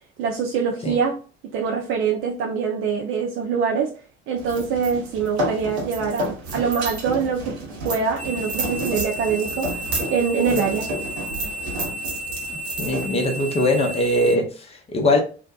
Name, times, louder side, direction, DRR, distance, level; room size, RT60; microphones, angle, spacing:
voice 1, 0.2-1.2 1.5-3.9 4.3-7.6 7.8-9.7 10.1-10.9, right 6 dB, 35° right, 0 dB, 0.4 m, -24 dB
sound 1, 4.4-14.4, right 1 dB, 70° right, 0.8 m, -31 dB
sound 2, 8.2-14.4, right 1 dB, 90° left, 0.5 m, -33 dB
voice 2, 12.5-15.2, left 1 dB, 20° left, 2 dB, 0.7 m, -22 dB
2.6 x 2.1 x 2.3 m, 0.37 s
figure-of-eight pair, 60°, 34 cm